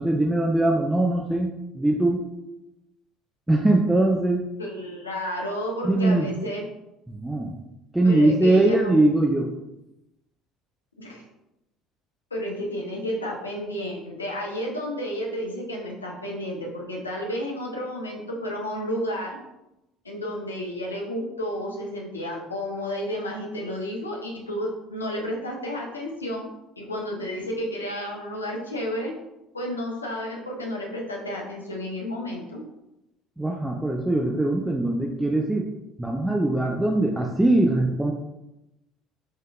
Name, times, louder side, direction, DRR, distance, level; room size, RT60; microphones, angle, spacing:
voice 1, 0.0-2.2 3.5-4.5 5.8-6.3 7.1-7.5 7.9-9.5 33.4-35.7 36.0-38.1, right 2 dB, 10° right, 1 dB, 0.5 m, -21 dB
voice 2, 4.6-6.6 8.0-9.0 11.0-11.2 12.3-19.4 20.0-26.5 26.8-29.1 29.5-32.6, equal, 85° left, -1 dB, 0.8 m, -31 dB
5.3 x 3.7 x 2.4 m, 0.91 s
figure-of-eight pair, 60°, 0 cm